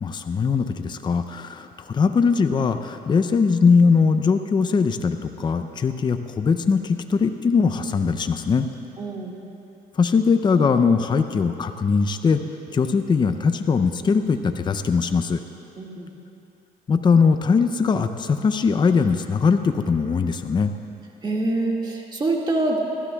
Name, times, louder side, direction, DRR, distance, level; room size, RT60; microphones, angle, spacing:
voice 1, 0.0-8.7 10.0-12.4 12.7-15.4 16.9-20.7, left 5 dB, 25° left, 8 dB, 0.5 m, -20 dB
voice 2, 9.0-9.4 15.8-16.1 21.2-22.8, right 2 dB, 25° right, -1 dB, 1.9 m, -25 dB
27.0 x 12.0 x 2.3 m, 2.7 s
cardioid pair, 110°, 17 cm